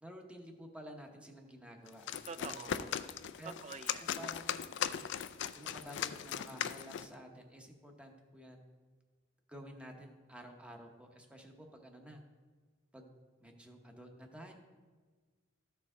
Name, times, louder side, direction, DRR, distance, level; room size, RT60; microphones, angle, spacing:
voice 1, 0.0-2.0 2.4-2.8 3.4-3.5 4.0-5.1 5.5-8.6 9.5-12.2 12.9-13.1 13.4-14.5, equal, 5° right, 3 dB, 0.8 m, -51 dB
sound 1, 1.9-7.1, left 9 dB, 65° left, 0.3 m, -39 dB
voice 2, 2.3-2.9 3.4-4.0, right 5 dB, 35° right, 13 dB, 0.3 m, -46 dB
13.0 x 4.7 x 3.7 m, 1.4 s
head